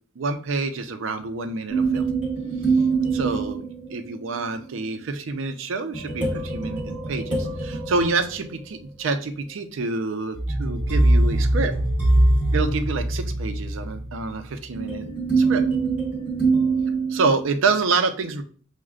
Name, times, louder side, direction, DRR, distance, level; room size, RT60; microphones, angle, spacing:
voice 1, 0.2-2.1 3.1-11.7 12.5-15.1 15.4-15.6 17.1-18.4, right 4 dB, 85° right, 7 dB, 0.5 m, -27 dB
sound 1, 1.7-4.3 5.9-8.9 10.3-17.7, right 2 dB, 5° right, 1.2 m, -23 dB
6.2 x 2.1 x 2.4 m, 0.43 s
head